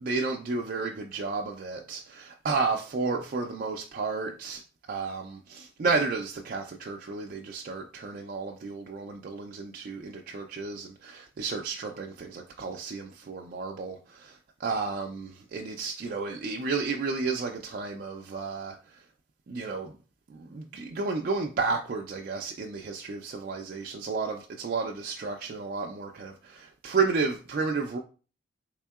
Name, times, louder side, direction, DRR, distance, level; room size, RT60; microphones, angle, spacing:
voice 1, 0.0-4.6 4.9-18.8 19.5-19.9 20.3-28.0, right 4 dB, 50° right, 0.3 m, -32 dB
3.6 x 3.5 x 2.3 m
head